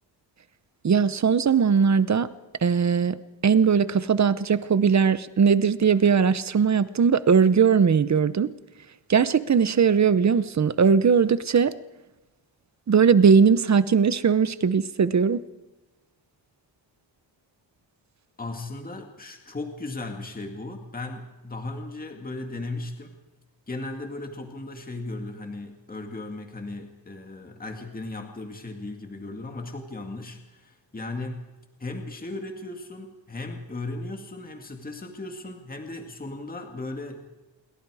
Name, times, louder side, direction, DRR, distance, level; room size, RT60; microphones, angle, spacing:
voice 1, 0.8-2.3 2.6-3.2 3.4-8.5 9.1-11.7 12.9-15.4, right 6 dB, 40° right, 14 dB, 0.8 m, -19 dB
voice 2, 18.4-23.1 23.7-31.4 31.8-37.4, left 2 dB, 20° left, 4 dB, 2.1 m, -36 dB
28.0 x 22.5 x 4.9 m, 1.1 s
wide cardioid pair, 180°, 45 cm